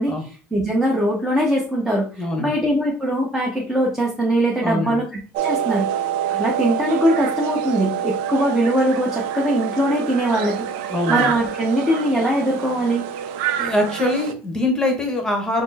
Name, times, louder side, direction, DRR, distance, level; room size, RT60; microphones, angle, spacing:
voice 1, 0.0-5.0 5.4-5.9 6.3-10.6 11.1-13.0, right 1 dB, 5° right, -2 dB, 0.9 m, -21 dB
voice 2, 2.2-2.5 4.6-5.0 10.9-11.3 13.6-15.6, left 1 dB, 10° left, 2 dB, 1.2 m, -23 dB
sound 1, 5.3-14.3, right 9 dB, 80° right, 0.4 m, -26 dB
4.2 x 2.0 x 4.1 m, 0.37 s
supercardioid pair, 110°, 5 cm